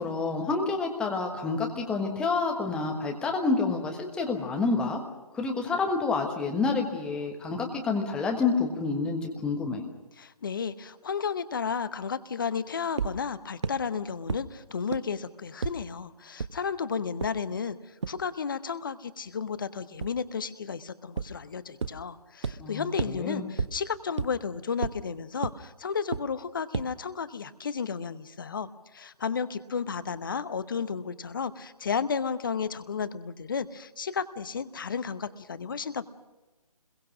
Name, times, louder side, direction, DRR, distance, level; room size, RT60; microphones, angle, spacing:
voice 1, 0.0-5.0 5.3-9.8 22.6-23.4, left 4 dB, 5° left, 2 dB, 1.3 m, -28 dB
voice 2, 10.2-36.0, left 6 dB, 35° left, 14 dB, 0.8 m, -33 dB
sound 1, 13.0-13.1 13.6-13.7 14.3-14.4 14.9-15.0 15.6-15.7 16.4-16.5 17.2-17.3 18.0-18.1 20.0-20.1 21.2-21.3 21.8-21.9 22.4-22.5 23.0-23.1 23.6-23.7 24.2-24.3 24.8-24.9 25.4-25.5 26.1-26.2 26.7-26.8, right 5 dB, 45° right, 0.8 m, -28 dB
26.0 x 22.0 x 6.2 m, 1.1 s
figure-of-eight pair, 145°, 20 cm